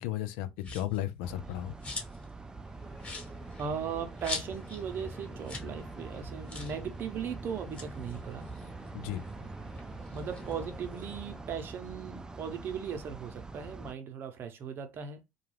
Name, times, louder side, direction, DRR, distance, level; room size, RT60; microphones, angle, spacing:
voice 1, 0.0-1.7 8.9-9.2, left 13 dB, 75° left, 0.4 m, -34 dB
sound 1, 0.6-1.0 1.5-2.3 2.6-2.7 3.0-4.8 5.1-5.2 5.4-5.7 6.0-6.1 6.5-6.8 7.6-9.3 9.7-11.2, left 3 dB, 30° left, 1.3 m, -42 dB
sound 2, 1.2-13.9, right 3 dB, 15° right, 0.3 m, -44 dB
sound 3, 2.2-11.4, right 1 dB, 10° left, 1.0 m, -50 dB
voice 2, 3.6-8.5 10.1-15.2, right 7 dB, 50° right, 0.7 m, -38 dB
2.3 x 2.2 x 3.2 m
hypercardioid pair, 75°, 5 cm